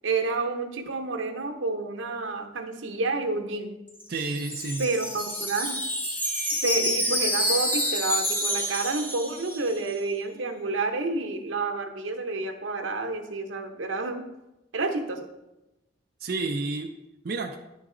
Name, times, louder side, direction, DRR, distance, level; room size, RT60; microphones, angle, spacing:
voice 1, 0.0-3.7 4.8-5.8 6.6-14.2 14.7-15.3, right 3 dB, 85° right, 5 dB, 0.8 m, -29 dB
Wind chime, 3.9-9.9, equal, 10° left, 0.7 m, -28 dB
voice 2, 4.1-4.9 16.2-16.9 17.2-17.6, right 3 dB, 50° right, 2 dB, 0.4 m, -30 dB
9.8 x 4.0 x 3.7 m, 0.96 s
head